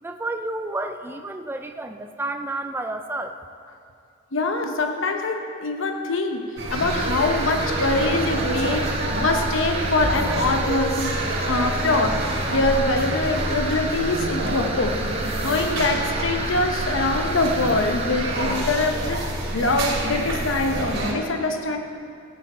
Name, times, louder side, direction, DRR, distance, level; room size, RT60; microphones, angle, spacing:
voice 1, 0.0-3.4, right 2 dB, 10° right, 6 dB, 0.4 m, -30 dB
voice 2, 4.3-11.2 11.5-15.0 15.4-19.2 19.5-21.8, left 2 dB, 80° left, 5 dB, 0.9 m, -24 dB
sound 1, 6.6-21.1, right 1 dB, 85° right, 2.7 m, -27 dB
sound 2, 6.8-18.6, right 3 dB, 30° right, 1.0 m, -33 dB
17.0 x 8.5 x 4.4 m, 2.5 s
head